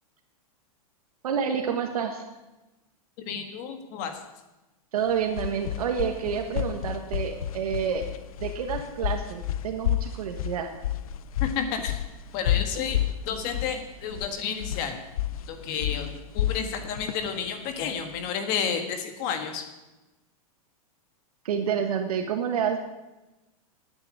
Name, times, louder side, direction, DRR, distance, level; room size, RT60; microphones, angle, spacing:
voice 1, 1.2-2.2 4.9-8.0 8.4-10.7 21.4-22.8, right 7 dB, 80° right, 4 dB, 1.6 m, -28 dB
voice 2, 3.2-4.2 11.4-12.0 12.3-13.0 13.2-15.0 15.5-19.6, left 7 dB, 35° left, 6 dB, 1.6 m, -31 dB
sound 1, 5.0-18.3, left 11 dB, 70° left, 0.7 m, -31 dB
10.5 x 9.1 x 8.7 m, 1.0 s
supercardioid pair, 170°, 19 cm